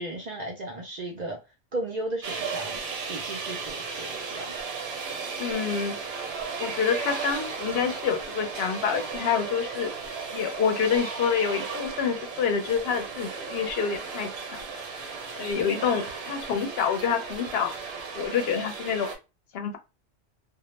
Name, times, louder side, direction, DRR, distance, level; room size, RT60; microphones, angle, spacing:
voice 1, 0.0-1.4 1.7-2.8 3.1-4.5 15.6-16.0, right 2 dB, 55° right, 0.5 m, -35 dB
sound 1, 2.2-19.2, right 5 dB, 70° right, 0.9 m, -35 dB
voice 2, 5.4-6.0 6.6-9.9 10.3-14.7 15.4-17.7 18.1-19.1 19.5-19.8, left 7 dB, 70° left, 0.7 m, -27 dB
2.1 x 2.0 x 3.0 m
omnidirectional pair, 1.1 m